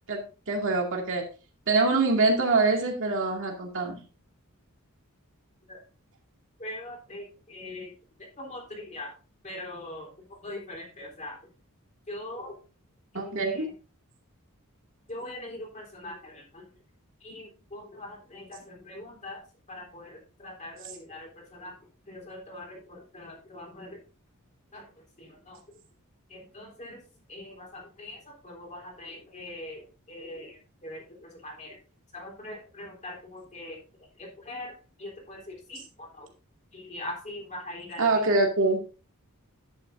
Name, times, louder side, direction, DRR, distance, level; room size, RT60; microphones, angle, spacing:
voice 1, 0.1-1.2 1.7-4.0 13.1-13.7 38.0-38.8, right 3 dB, 60° right, 1 dB, 2.3 m, -24 dB
voice 2, 6.6-7.2 7.5-7.9 8.4-9.1 9.4-10.1 10.4-11.4 12.1-12.5 13.1-13.6 15.1-16.6 17.2-19.4 19.7-21.7 22.1-24.0 24.7-24.8 25.2-25.6 26.3-27.0 27.3-28.2 28.4-30.6 30.8-31.7 32.1-33.8 34.2-34.7 35.0-36.3 36.7-38.2, left 1 dB, 35° left, 0 dB, 3.5 m, -41 dB
10.5 x 9.1 x 2.6 m, 0.34 s
head